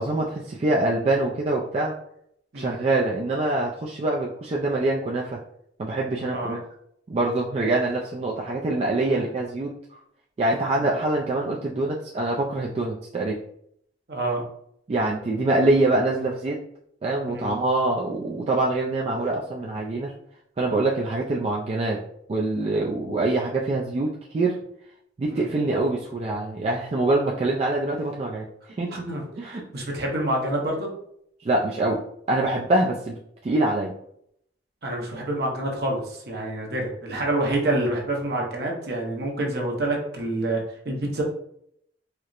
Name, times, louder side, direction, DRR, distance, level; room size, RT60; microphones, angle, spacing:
voice 1, 0.0-1.9 2.5-5.4 5.8-6.6 7.1-9.7 10.4-13.4 14.9-16.6 17.0-20.1 20.6-22.0 22.3-24.6 25.2-28.4 28.8-29.0 29.4-29.6 31.4-32.0 32.3-33.9, right 2 dB, 35° right, -3 dB, 0.3 m, -24 dB
voice 2, 14.1-14.4 17.3-17.5 25.3-25.5 28.9-29.2 29.5-30.9 34.8-41.2, right 1 dB, 60° right, 0 dB, 0.8 m, -27 dB
4.3 x 2.0 x 2.4 m, 0.71 s
head